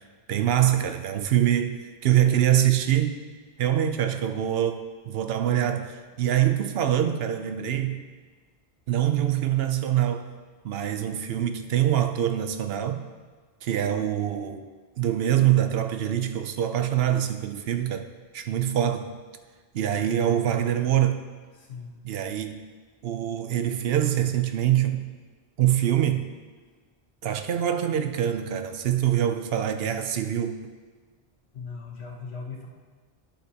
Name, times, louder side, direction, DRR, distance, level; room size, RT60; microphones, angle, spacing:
voice 1, 0.3-3.2 3.6-8.0 8.9-10.3 10.6-13.0 13.6-14.6 15.0-18.1 18.3-19.2 19.7-21.2 22.0-22.7 23.0-25.1 25.6-26.3 27.2-30.6, right 11 dB, 70° right, 0.8 m, -24 dB
voice 2, 21.5-22.0 31.5-32.7, left 5 dB, 85° left, 1.5 m, -38 dB
10.5 x 7.7 x 2.8 m
omnidirectional pair, 1.1 m